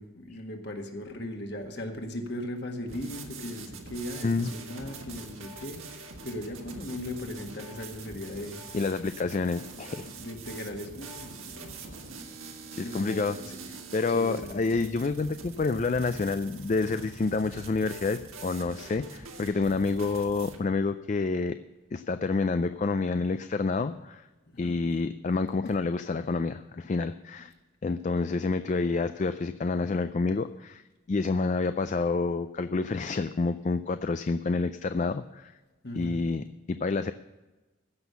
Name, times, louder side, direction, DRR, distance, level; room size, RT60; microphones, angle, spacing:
voice 1, 0.0-8.6 10.2-12.3 12.7-13.6 14.1-14.6 24.6-24.8 35.8-36.2, left 1 dB, 55° left, 3 dB, 1.8 m, -38 dB
sound 1, 2.9-20.6, right 3 dB, 85° right, 1.6 m, -44 dB
voice 2, 8.7-10.1 12.7-13.4 13.9-21.6 21.9-24.3 24.6-27.5 27.8-30.8 31.1-35.6 35.9-37.1, left 3 dB, 35° left, 10 dB, 0.3 m, -28 dB
15.0 x 6.3 x 6.8 m, 1.2 s
head